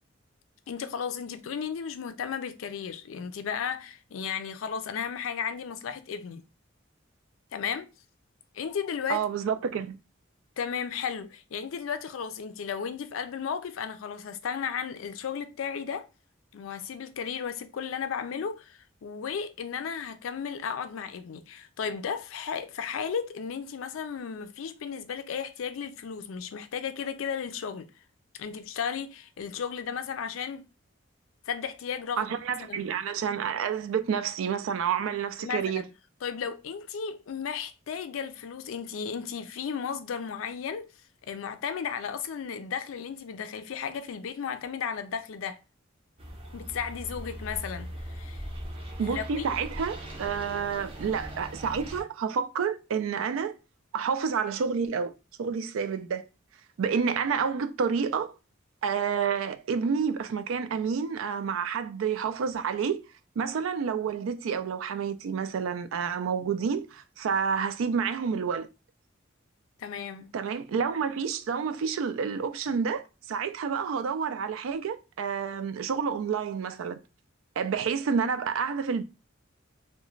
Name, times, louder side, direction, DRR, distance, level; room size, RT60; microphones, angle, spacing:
voice 1, 0.7-6.4 7.5-7.9 8.5-9.2 10.6-16.1 16.5-27.9 28.4-30.7 31.5-32.3 32.6-32.8 35.4-35.9 36.2-40.9 41.2-45.6 46.5-48.5 49.0-49.5 69.8-70.3, left 7 dB, 90° left, 0.4 m, -34 dB
voice 2, 9.1-10.0 32.2-35.8 49.0-53.5 53.9-55.1 55.4-56.2 56.8-58.3 58.8-63.0 63.4-68.7 70.3-77.0 77.6-79.0, right 6 dB, 85° right, 0.3 m, -29 dB
sound 1, 46.2-52.0, equal, 30° right, 0.5 m, -40 dB
2.3 x 2.1 x 3.1 m
head